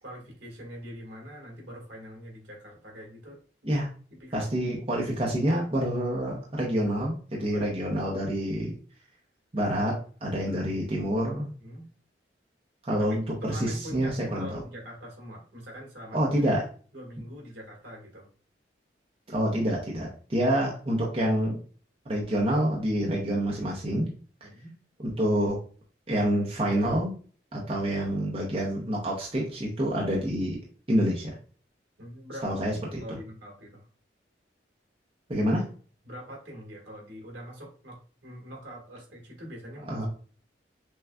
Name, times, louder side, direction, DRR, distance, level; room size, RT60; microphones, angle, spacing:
voice 1, 0.0-4.5 7.5-7.7 10.5-10.7 11.6-11.9 12.9-13.2 13.4-16.5 16.9-18.3 24.4-24.8 32.0-33.9 36.0-40.1, equal, 75° right, -2 dB, 1.7 m, -43 dB
voice 2, 4.3-8.7 9.5-9.9 10.2-11.5 12.8-13.2 13.5-14.5 16.1-16.6 19.3-21.6 22.1-24.1 25.2-25.6 26.1-27.1 27.5-30.6 30.9-31.3 32.4-32.7 33.1-33.2 35.3-35.6 39.9-40.1, equal, 30° right, -3 dB, 0.7 m, -27 dB
6.1 x 2.3 x 2.3 m, 0.41 s
head